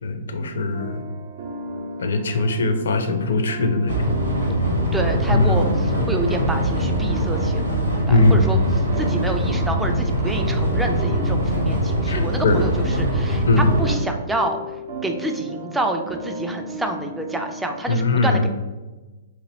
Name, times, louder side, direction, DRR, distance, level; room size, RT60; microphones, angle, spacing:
voice 1, 0.0-1.0 2.0-4.0 5.3-5.7 8.1-8.7 12.1-12.6 13.5-13.7 17.9-18.5, left 2 dB, 65° left, 6 dB, 0.5 m, -20 dB
sound 1, 0.7-17.8, equal, 55° right, 0.7 m, -36 dB
sound 2, 3.9-14.0, right 1 dB, 80° right, 1.0 m, -22 dB
voice 2, 4.9-7.6 8.1-8.6 9.0-14.6 15.0-18.5, right 1 dB, 5° right, 4 dB, 0.4 m, -28 dB
3.0 x 2.6 x 4.0 m, 1.2 s
figure-of-eight pair, 115°, 0 cm